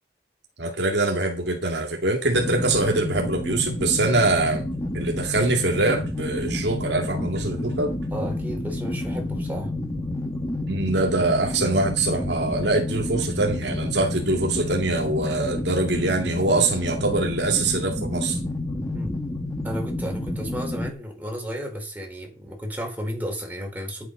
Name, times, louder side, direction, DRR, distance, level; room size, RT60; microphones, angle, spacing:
voice 1, 0.6-4.7 4.9-8.0 10.7-18.4, right 2 dB, 75° right, 2 dB, 2.4 m, -23 dB
Horror Ambience, 2.3-20.9, left 1 dB, 20° left, 1.8 m, -30 dB
voice 2, 8.1-9.7 18.9-19.1 19.6-24.1, equal, 10° right, 0 dB, 4.4 m, -33 dB
10.0 x 8.1 x 5.5 m, 0.32 s
head